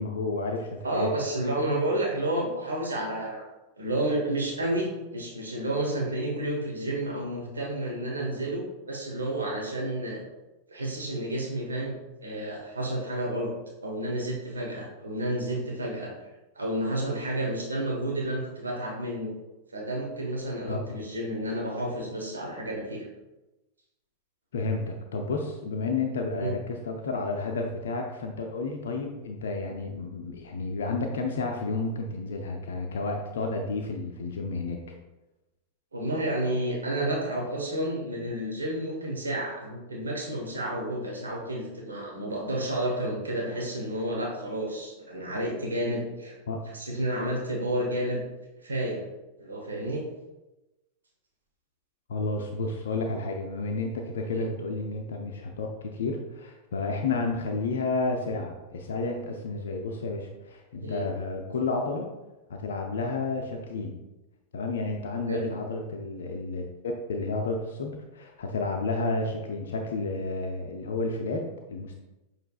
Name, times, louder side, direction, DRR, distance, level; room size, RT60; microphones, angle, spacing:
voice 1, 0.0-1.1 20.7-20.8 24.5-34.8 46.5-46.7 52.1-62.1 62.5-64.0 64.5-66.7 67.1-72.0, left 3 dB, 65° left, 2 dB, 0.5 m, -31 dB
voice 2, 0.8-3.4 3.8-10.2 10.7-12.0 12.2-13.5 13.8-16.1 16.6-19.3 19.7-23.1 26.3-26.5 35.9-46.4 46.6-48.2 48.6-49.0 49.4-50.0 54.4-54.5 60.8-61.0 65.3-65.5, right 1 dB, 75° right, -2 dB, 1.1 m, -30 dB
6.5 x 3.3 x 2.4 m, 1.0 s
figure-of-eight pair, 90°, 0 cm